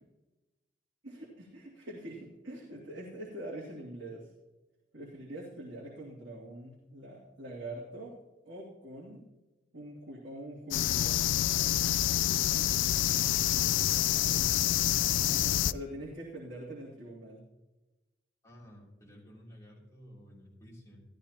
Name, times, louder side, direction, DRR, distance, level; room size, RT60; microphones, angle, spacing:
voice 1, 1.0-4.3 4.9-8.2 8.4-9.2 9.7-11.2 15.2-15.4 15.7-17.4, right 1 dB, 80° right, -5 dB, 2.6 m, -44 dB
sound 1, 10.7-15.7, left 13 dB, 80° left, 0.3 m, -27 dB
voice 2, 13.4-13.9 14.1-14.5 18.4-21.0, equal, 15° left, -4 dB, 3.2 m, -52 dB
13.5 x 13.5 x 2.9 m, 1.1 s
head